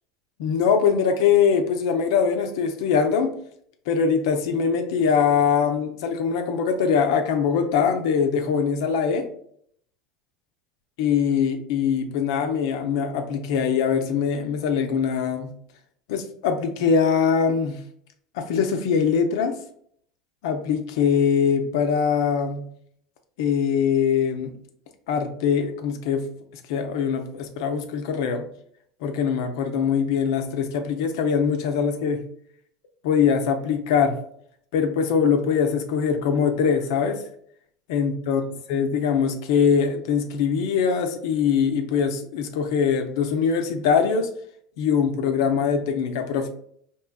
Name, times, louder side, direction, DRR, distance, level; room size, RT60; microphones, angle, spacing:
voice 1, 0.4-3.3 3.9-9.3 11.0-15.5 16.1-17.8 18.3-19.6 20.4-22.7 23.4-24.5 25.1-26.2 26.7-28.5 29.0-32.2 33.0-34.1 34.7-37.2 37.9-38.4 38.7-44.3 44.8-46.5, left 6 dB, 65° left, 5 dB, 0.6 m, -22 dB
4.4 x 3.0 x 2.3 m, 0.65 s
hypercardioid pair, 80°, 2 cm